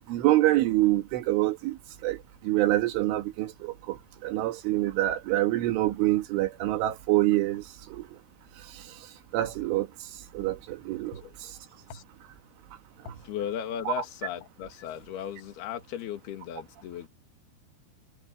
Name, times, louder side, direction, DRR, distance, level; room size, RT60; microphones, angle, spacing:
voice 1, 0.1-1.8 2.0-2.2 2.5-4.0 4.2-7.6 7.9-8.0 9.3-9.9 10.4-11.2 13.9-14.0, right 16 dB, 85° right, 4.3 m, -25 dB
voice 2, 11.1-11.5 11.9-12.0 13.1-17.1, left 9 dB, 60° left, 3.8 m, -36 dB
omnidirectional pair, 5.4 m